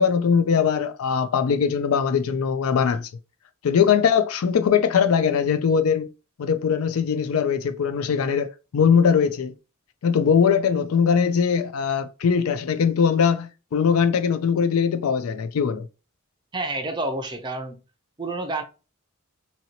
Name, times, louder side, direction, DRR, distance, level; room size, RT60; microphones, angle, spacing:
voice 1, 0.0-3.1 3.6-6.1 6.4-9.5 10.0-15.9, left 6 dB, 80° left, 0.4 m, -21 dB
voice 2, 16.5-17.8 18.2-18.6, right 2 dB, 20° right, 0.4 m, -29 dB
2.8 x 2.8 x 2.9 m
head